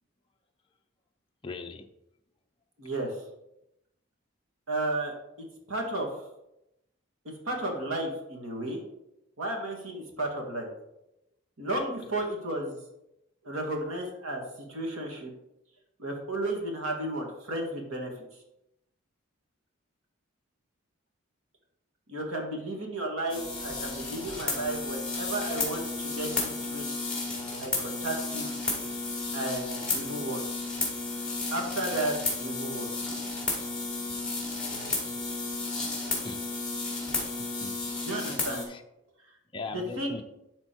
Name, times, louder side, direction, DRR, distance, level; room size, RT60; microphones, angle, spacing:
voice 1, 1.4-1.9 36.2-36.4 37.2-38.0 38.7-38.8 39.5-40.2, left 3 dB, 25° left, 0.5 m, -40 dB
voice 2, 2.8-3.2 4.7-5.1 5.4-6.2 7.5-8.8 9.4-10.7 11.6-12.8 13.4-14.4 14.7-15.3 16.0-18.1 22.1-26.9 27.6-28.5 29.3-30.4 31.5-32.9 38.0-38.6 39.7-40.2, right 1 dB, 80° right, 1.9 m, -33 dB
sound 1, 23.3-38.6, left 3 dB, 5° left, 2.1 m, -33 dB
11.5 x 4.4 x 4.5 m
head